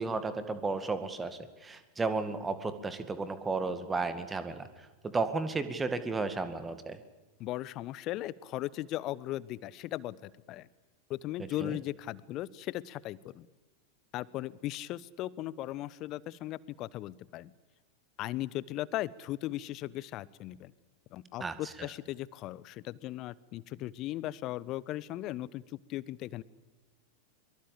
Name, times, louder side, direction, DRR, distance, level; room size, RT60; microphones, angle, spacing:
voice 1, 0.0-7.0 11.6-11.8 21.4-21.9, right 3 dB, 15° right, 11 dB, 2.1 m, -34 dB
voice 2, 7.4-10.7 11.1-13.5 14.1-17.5 18.2-20.7 21.1-25.6 25.9-26.4, left 15 dB, 35° left, 22 dB, 0.9 m, -37 dB
24.0 x 23.0 x 8.6 m, 1.2 s
figure-of-eight pair, 90°, 0 cm